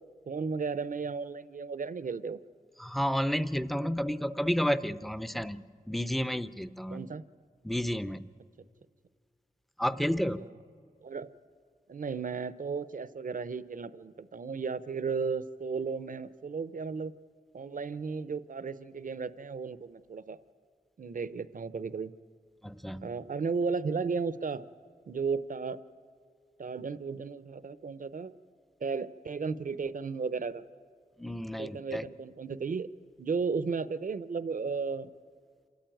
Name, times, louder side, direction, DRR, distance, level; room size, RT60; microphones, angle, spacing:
voice 1, 0.3-2.4 6.9-7.2 10.4-10.5 11.0-11.3 11.9-17.1 17.5-20.4 21.0-22.1 23.0-24.6 25.1-25.8 26.6-28.3 28.8-30.6 31.6-32.9 33.2-35.1, right 5 dB, 60° right, 15 dB, 0.7 m, -34 dB
voice 2, 2.8-7.1 7.6-8.3 9.8-10.5 22.6-23.1 31.2-32.1, equal, ahead, 14 dB, 0.6 m, -31 dB
27.5 x 14.0 x 9.1 m, 2.1 s
wide cardioid pair, 105°, 16 cm